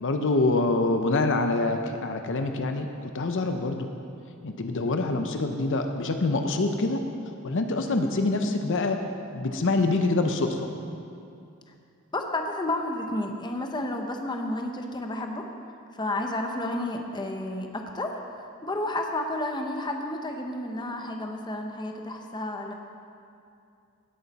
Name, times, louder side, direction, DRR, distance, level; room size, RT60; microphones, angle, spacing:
voice 1, 0.0-3.9 4.4-7.0 7.4-9.0 9.3-10.7, left 2 dB, 60° left, 6 dB, 0.7 m, -25 dB
voice 2, 12.1-15.5 15.9-18.2 18.6-22.7, left 1 dB, 20° left, 3 dB, 0.8 m, -31 dB
16.5 x 8.5 x 4.1 m, 2.5 s
head